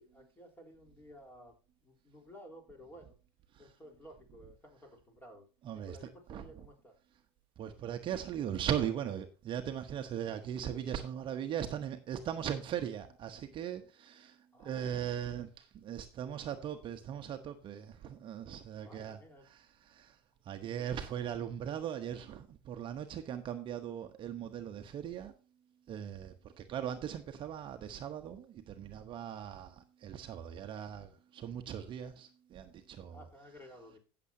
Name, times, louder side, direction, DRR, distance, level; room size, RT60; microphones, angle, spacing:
voice 1, 0.0-3.2 3.6-5.5 5.7-7.0 14.5-15.2 18.8-19.5 20.8-21.1 33.0-34.0, equal, 15° left, 3.8 m, -55 dB
voice 2, 5.6-6.0 6.3-6.4 7.6-19.2 19.5-20.2 20.4-25.3 25.9-33.2, right 9 dB, 40° right, 1.0 m, -39 dB
16.5 x 7.0 x 2.7 m
supercardioid pair, 105°, 14 cm